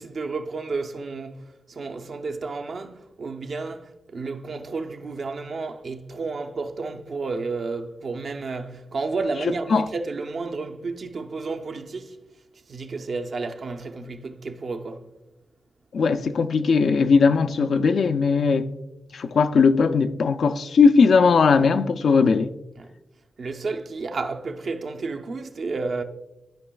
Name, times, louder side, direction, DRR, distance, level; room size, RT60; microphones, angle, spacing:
voice 1, 0.0-12.2 12.5-15.1 22.8-22.9 23.4-26.0, right 3 dB, 65° right, 0.6 m, -31 dB
voice 2, 15.9-18.7 19.1-22.5, left 5 dB, 75° left, 0.4 m, -19 dB
13.0 x 5.0 x 2.3 m
cardioid pair, 65°, 0 cm